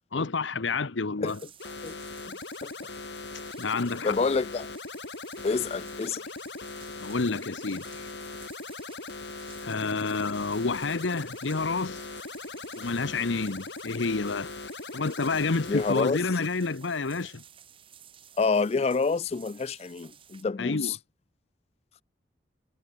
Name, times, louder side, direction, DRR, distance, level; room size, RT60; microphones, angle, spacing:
voice 1, 0.1-1.4 3.6-4.2 7.0-8.1 9.6-12.1 12.8-14.6 14.9-17.4 20.6-21.0, left 3 dB, 90° left, 1.0 m, -29 dB
sound 1, 1.3-20.4, right 9 dB, 30° right, 2.0 m, -53 dB
sound 2, 1.6-16.5, left 3 dB, 70° left, 2.1 m, -40 dB
voice 2, 4.0-4.7 5.4-6.2 15.7-16.2 18.4-21.0, left 4 dB, 35° left, 0.3 m, -27 dB
head